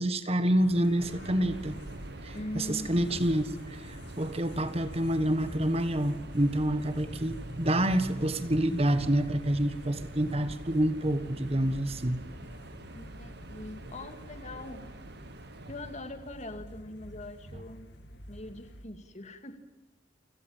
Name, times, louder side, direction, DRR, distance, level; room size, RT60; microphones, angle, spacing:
voice 1, 0.0-1.7 2.2-3.4 3.7-12.2, right 1 dB, 30° right, 11 dB, 1.5 m, -28 dB
sound 1, 0.6-18.9, equal, 60° left, 2.5 m, -49 dB
Subway metro underground, 1.0-16.3, right 2 dB, 60° right, 1.4 m, -46 dB
voice 2, 2.3-3.4 13.0-14.9 15.7-17.9 18.3-19.6, left 1 dB, 35° left, 8 dB, 2.1 m, -42 dB
29.5 x 17.5 x 7.5 m, 1.2 s
head